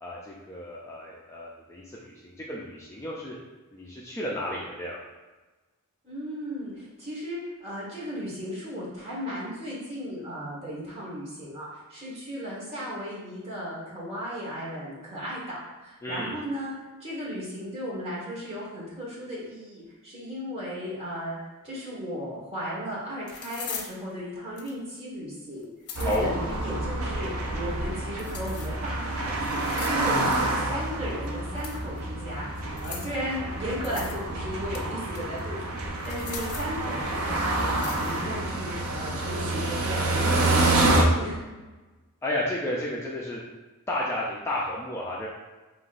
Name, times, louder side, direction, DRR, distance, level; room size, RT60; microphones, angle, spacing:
voice 1, 0.0-3.4 3.7-5.0 16.0-16.4 26.0-26.3 42.2-43.4 43.9-45.3, left 1 dB, 10° left, -5 dB, 0.4 m, -32 dB
voice 2, 6.0-16.7 17.0-21.4 21.6-25.7 26.0-35.8 36.0-38.7 39.0-41.4, equal, 30° right, -6 dB, 1.3 m, -35 dB
sound 1, 22.3-22.4 23.3-23.9 24.6-24.9 25.6-26.2 28.2-28.9 29.4-30.1 31.5-32.0 32.8-33.2 33.8-34.2 34.5-35.4 36.0-36.8 37.8-38.3, left 6 dB, 75° left, 0.6 m, -40 dB
sound 2, 26.0-41.0, right 2 dB, 65° right, 0.6 m, -28 dB
5.7 x 3.0 x 2.5 m, 1.2 s
head